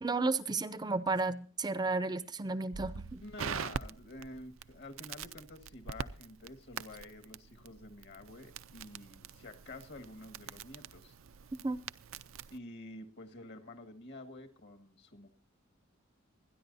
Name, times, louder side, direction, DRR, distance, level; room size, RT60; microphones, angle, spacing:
voice 1, 0.0-3.2 11.6-11.8, right 3 dB, 20° right, 14 dB, 0.5 m, -33 dB
Crackle, 2.7-12.6, right 6 dB, 90° right, 0.5 m, -44 dB
voice 2, 3.2-11.2 12.5-15.3, left 2 dB, 60° left, 8 dB, 1.7 m, -49 dB
26.0 x 10.5 x 2.7 m, 0.38 s
head